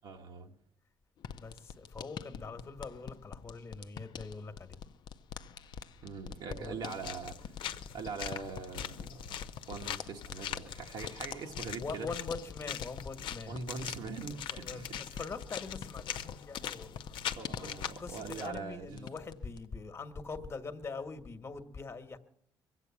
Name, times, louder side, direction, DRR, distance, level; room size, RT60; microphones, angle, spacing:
voice 1, 0.0-0.5 6.0-7.6 7.9-9.4 9.7-12.1 13.5-15.2 17.3-19.1, right 4 dB, 70° right, 1.4 m, -42 dB
sound 1, 1.2-18.7 19.0-19.7, left 8 dB, 60° left, 0.6 m, -46 dB
voice 2, 1.3-4.8 6.6-6.9 11.8-13.6 14.5-16.9 17.6-17.7 18.0-22.2, left 4 dB, 30° left, 1.3 m, -43 dB
sound 2, 5.3-19.8, right 2 dB, 85° right, 3.8 m, -61 dB
sound 3, 6.8-18.5, left 9 dB, 80° left, 0.9 m, -42 dB
23.0 x 8.2 x 7.1 m
cardioid pair, 135°, 8 cm